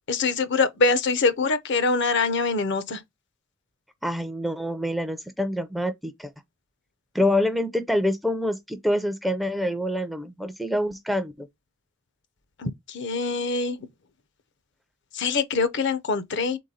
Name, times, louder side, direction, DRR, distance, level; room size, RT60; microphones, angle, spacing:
voice 1, 0.1-3.0 12.6-13.8 15.1-16.6, left 4 dB, 55° left, 0.6 m, -24 dB
voice 2, 4.0-6.3 7.1-11.5, left 1 dB, ahead, 0.4 m, -26 dB
3.8 x 3.4 x 4.1 m
head